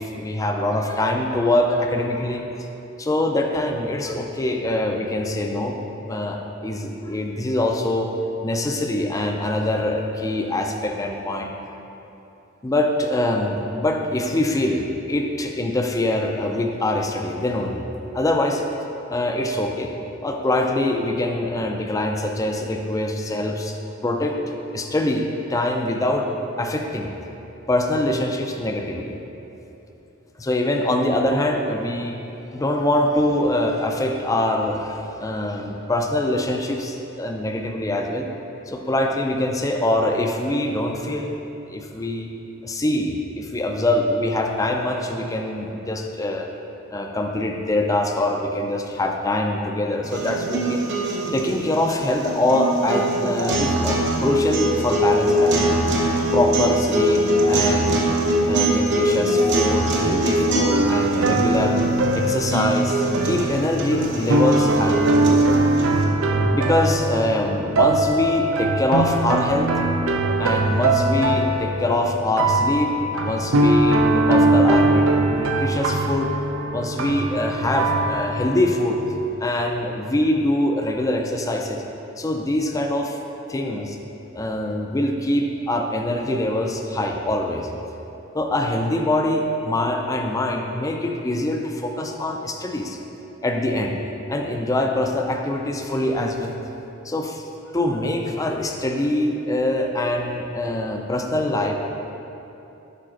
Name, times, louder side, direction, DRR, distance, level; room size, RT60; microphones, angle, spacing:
voice 1, 0.0-2.5 3.0-5.8 6.1-8.1 8.4-11.5 12.6-17.8 18.1-18.6 19.1-19.9 20.2-23.8 24.0-24.4 24.7-26.3 26.6-27.1 27.7-29.2 30.4-32.2 32.5-38.3 38.7-41.4 41.7-42.3 42.6-46.5 46.9-50.8 51.3-55.7 56.3-58.1 58.5-61.8 62.1-65.0 66.4-69.7 70.4-72.9 73.2-76.3 76.6-79.0 79.4-81.8 82.2-83.2 83.5-84.0 84.3-87.7 88.3-93.0 93.4-94.0 94.3-96.5 97.0-97.4 97.7-101.9, left 1 dB, 15° left, 2 dB, 0.4 m, -24 dB
sound 1, 50.0-66.0, right 1 dB, 60° right, 1.0 m, -22 dB
sound 2, 60.7-79.3, right 2 dB, 75° right, 0.5 m, -21 dB
11.0 x 4.2 x 3.8 m, 2.9 s
head